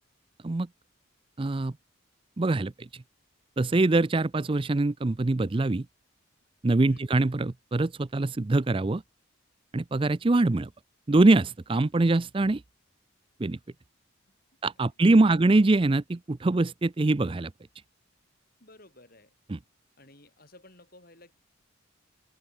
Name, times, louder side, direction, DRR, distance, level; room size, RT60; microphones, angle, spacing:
voice 1, 1.4-1.7 2.4-2.9 3.6-5.9 6.6-9.0 9.7-10.7 11.1-12.6 13.4-13.6 14.6-17.5 19.5-19.6, right 2 dB, 25° right, 0.4 m, -23 dB
voice 2, 14.8-15.4 18.6-19.3 20.0-21.3, left 1 dB, 45° left, 6.9 m, -55 dB
open air
head